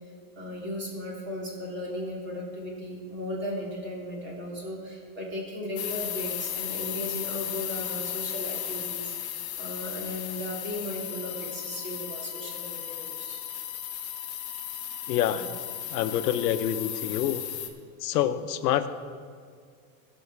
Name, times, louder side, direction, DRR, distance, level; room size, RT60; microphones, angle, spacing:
voice 1, 0.3-13.4 15.3-15.4, left 1 dB, 25° right, -3 dB, 3.1 m, -36 dB
sound 1, 5.8-17.7, left 10 dB, 30° left, 1.0 m, -35 dB
voice 2, 15.1-15.5 15.9-17.4 18.0-18.9, left 11 dB, 75° left, 11 dB, 0.9 m, -26 dB
17.0 x 6.3 x 4.7 m, 2.1 s
supercardioid pair, 145°, 47 cm